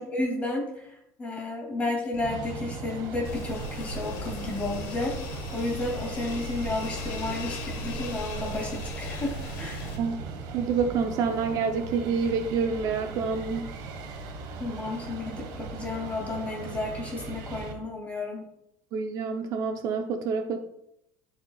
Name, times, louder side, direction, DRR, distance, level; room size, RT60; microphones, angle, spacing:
voice 1, 0.0-9.9 14.6-18.4, left 2 dB, 15° left, 0 dB, 2.4 m, -32 dB
sound 1, 2.1-17.7, right 4 dB, 65° right, 1.3 m, -38 dB
sound 2, 3.2-10.0, left 4 dB, 80° left, 1.5 m, -38 dB
voice 2, 10.5-13.6 18.9-20.6, right 5 dB, 45° right, 6 dB, 0.6 m, -27 dB
12.5 x 4.8 x 2.3 m, 0.78 s
cardioid pair, 160°, 8 cm